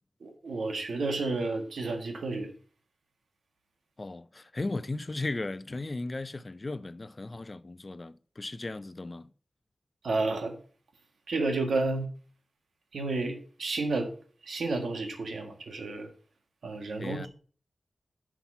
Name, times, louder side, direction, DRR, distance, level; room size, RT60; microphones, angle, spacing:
voice 1, 0.2-2.5 10.0-10.5 11.3-12.1 12.9-14.1 14.4-16.1 16.6-17.3, right 3 dB, 90° right, 1.7 m, -31 dB
voice 2, 4.0-9.3 17.0-17.3, left 2 dB, 40° left, 0.5 m, -36 dB
5.8 x 5.7 x 7.0 m
cardioid pair, 60°, 0 cm